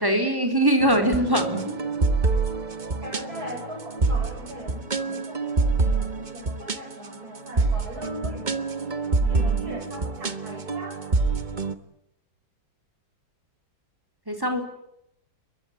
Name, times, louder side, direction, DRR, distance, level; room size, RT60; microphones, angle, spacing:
voice 1, 0.0-1.8 9.2-9.8 14.3-14.6, right 1 dB, 10° right, 5 dB, 4.1 m, -23 dB
sound 1, 0.8-11.7, right 3 dB, 25° right, 1.2 m, -26 dB
voice 2, 3.0-8.5 9.3-11.0, left 1 dB, 45° right, 5 dB, 7.8 m, -39 dB
29.5 x 23.5 x 8.3 m, 0.81 s
omnidirectional pair, 2.3 m